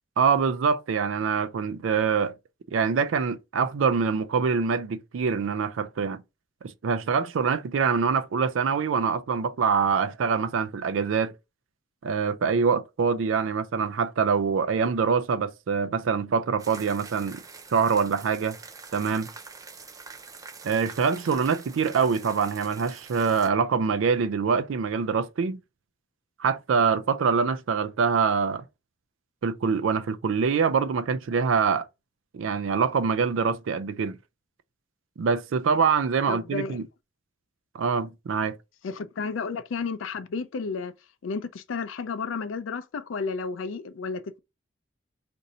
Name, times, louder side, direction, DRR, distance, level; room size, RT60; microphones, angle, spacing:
voice 1, 0.2-2.3 2.7-6.2 6.6-11.3 12.0-17.4 17.7-18.6 18.9-19.3 20.6-25.6 26.4-28.6 29.4-31.9 32.3-34.2 35.2-36.9 37.7-38.6, right 5 dB, 80° right, 0.4 m, -25 dB
sound 1, 16.6-23.5, right 4 dB, 20° right, 0.4 m, -45 dB
voice 2, 36.3-36.8 38.8-40.9 41.2-44.4, left 4 dB, 80° left, 0.4 m, -32 dB
2.6 x 2.6 x 4.1 m
head